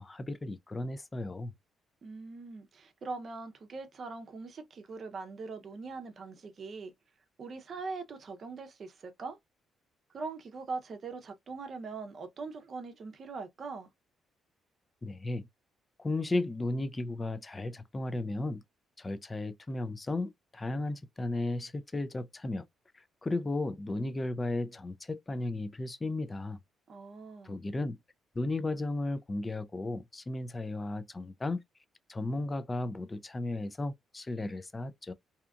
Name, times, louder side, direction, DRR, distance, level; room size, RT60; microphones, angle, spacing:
voice 1, 0.0-1.5 15.0-15.5 16.0-18.6 19.0-22.6 23.2-26.6 27.4-28.0 28.4-31.6 32.1-35.1, left 2 dB, 25° left, 0.4 m, -34 dB
voice 2, 2.0-6.9 7.4-9.4 10.1-13.9 26.9-27.5, right 4 dB, 50° right, 0.6 m, -41 dB
2.7 x 2.3 x 2.3 m
cardioid pair, 90°, 0 cm